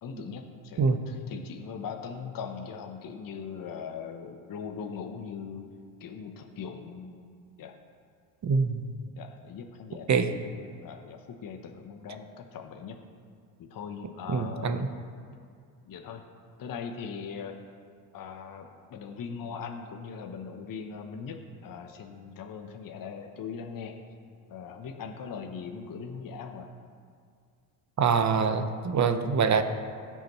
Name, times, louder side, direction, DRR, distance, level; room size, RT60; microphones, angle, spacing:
voice 1, 0.0-5.7 6.0-7.3 7.6-7.7 9.2-13.0 13.6-14.9 15.8-16.2 16.6-17.5 18.1-24.0 24.5-26.7, left 6 dB, 45° left, 4 dB, 0.9 m, -40 dB
voice 2, 8.4-8.8 10.1-10.3 14.3-14.9 28.0-29.6, right 5 dB, 35° right, 9 dB, 0.9 m, -24 dB
16.5 x 5.7 x 3.1 m, 2.2 s
supercardioid pair, 65°, 49 cm